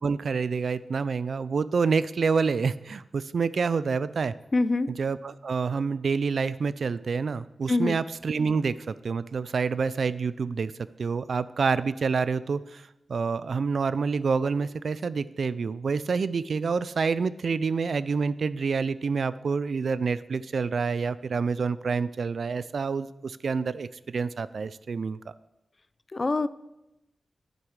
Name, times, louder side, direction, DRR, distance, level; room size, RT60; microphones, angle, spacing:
voice 1, 0.0-4.3 5.0-10.7 11.0-25.3, right 5 dB, 70° right, 17 dB, 0.3 m, -27 dB
voice 2, 4.5-4.9 7.7-8.0 26.1-26.5, left 3 dB, 35° left, 15 dB, 0.4 m, -24 dB
10.5 x 6.4 x 4.7 m, 0.93 s
wide cardioid pair, 95°, 0 cm